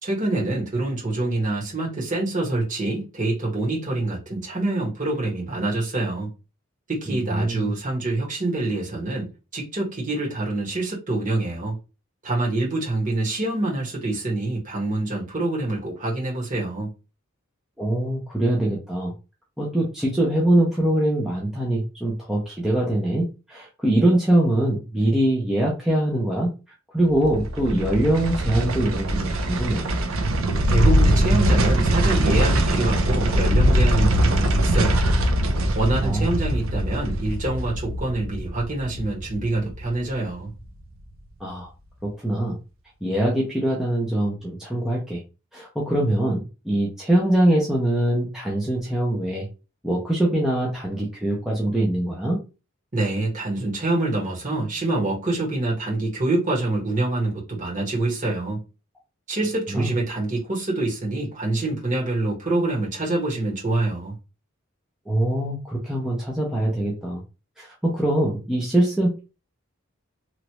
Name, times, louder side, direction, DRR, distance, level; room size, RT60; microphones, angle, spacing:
voice 1, 0.0-6.3 6.9-9.3 9.5-11.8 12.2-16.9 30.7-35.1 35.7-40.5 52.9-58.6 59.3-64.1, right 2 dB, 35° right, 1.3 m, -26 dB
voice 2, 7.1-7.7 17.8-19.1 19.6-26.5 26.9-29.9 36.0-36.4 41.4-41.7 42.0-42.6 43.0-45.2 45.5-49.5 49.8-52.4 59.7-59.9 65.1-67.2 67.6-69.2, right 1 dB, ahead, 0.6 m, -23 dB
sound 1, 27.0-40.2 40.6-40.7, right 1 dB, 75° right, 0.5 m, -22 dB
3.1 x 2.5 x 2.9 m
head